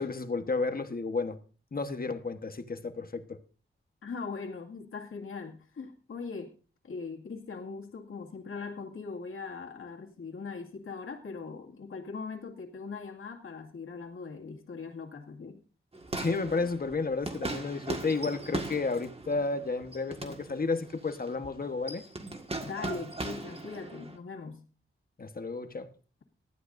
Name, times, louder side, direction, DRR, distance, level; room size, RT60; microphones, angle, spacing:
voice 1, 0.0-1.4 1.7-3.4 16.1-22.0 25.2-25.9, left 3 dB, 45° left, 1.3 m, -32 dB
voice 2, 4.0-6.5 6.8-15.6 22.6-24.6, left 4 dB, 80° left, 2.2 m, -40 dB
sound 1, 15.9-24.2, right 2 dB, 30° right, 1.8 m, -39 dB
19.0 x 12.5 x 2.6 m
wide cardioid pair, 90°, 21 cm